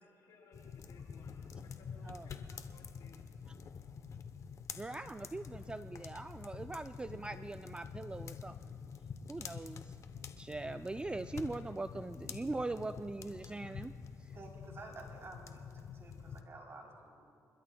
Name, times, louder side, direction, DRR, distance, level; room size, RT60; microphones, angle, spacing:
voice 1, 0.0-3.2 3.6-3.9, left 5 dB, 80° left, -2 dB, 3.8 m, -62 dB
sound 1, 0.5-16.4, left 6 dB, 50° left, 0.8 m, -47 dB
voice 2, 4.7-8.7 9.3-10.0 10.4-13.9 14.2-14.3, right 2 dB, 15° right, 11 dB, 0.3 m, -41 dB
voice 3, 14.3-17.3, right 2 dB, 40° right, -1 dB, 3.4 m, -52 dB
28.0 x 12.5 x 2.3 m, 2.3 s
supercardioid pair, 70°, 7 cm